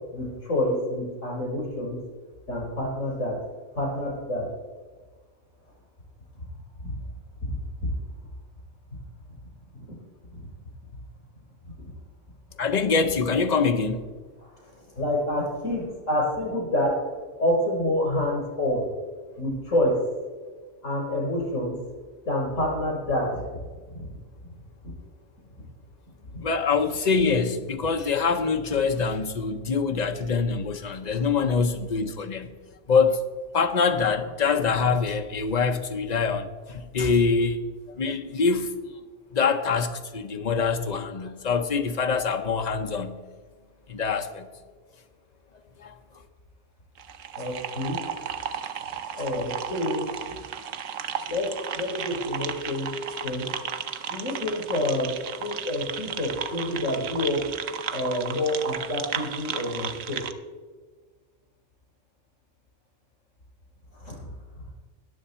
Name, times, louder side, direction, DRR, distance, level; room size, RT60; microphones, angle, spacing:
voice 1, 0.1-2.0 2.5-3.4 3.8-4.5 6.8-6.9 7.5-7.6 9.7-10.0 10.3-10.5 11.8-11.9 14.4-17.0 17.4-18.8 19.4-19.9 20.8-21.7 22.3-23.6 23.9-24.1 24.8-24.9 25.6-25.7 26.3-26.4 31.1-31.2 47.4-48.0 49.1-50.4 51.3-52.9 53.2-53.5 54.1-55.2 55.4-57.4 57.9-60.2 63.9-64.3, left 1 dB, 85° left, 5.2 m, -28 dB
voice 2, 12.6-14.1 26.4-32.5 32.9-33.2 33.5-37.6 38.0-38.7 39.3-43.2 43.9-44.5 45.8-46.2, left 5 dB, 40° left, 0.8 m, -24 dB
sound 1, 47.0-60.3, right 8 dB, 90° right, 1.1 m, -34 dB
20.0 x 7.1 x 4.3 m
omnidirectional pair, 1.3 m